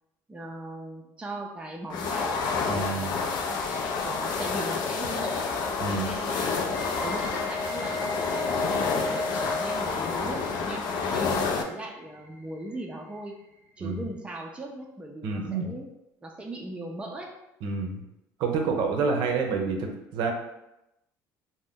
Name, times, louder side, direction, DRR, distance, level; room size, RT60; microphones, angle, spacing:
voice 1, 0.3-2.4 2.7-5.5 5.9-6.6 7.0-13.4 13.8-15.9 16.2-17.3, right 1 dB, 15° right, 1 dB, 0.4 m, -39 dB
sound 1, 1.9-11.6, left 4 dB, 60° left, 0.4 m, -29 dB
voice 2, 2.7-3.1 5.8-6.1 13.8-14.0 15.2-15.7 17.6-18.0 18.4-20.3, right 4 dB, 65° right, 2 dB, 0.6 m, -28 dB
sound 2, 3.7-9.9, left 2 dB, 80° left, 0.8 m, -36 dB
sound 3, 6.5-14.0, left 1 dB, 30° left, 0.7 m, -46 dB
2.5 x 2.1 x 3.5 m, 0.89 s
supercardioid pair, 90°, 8 cm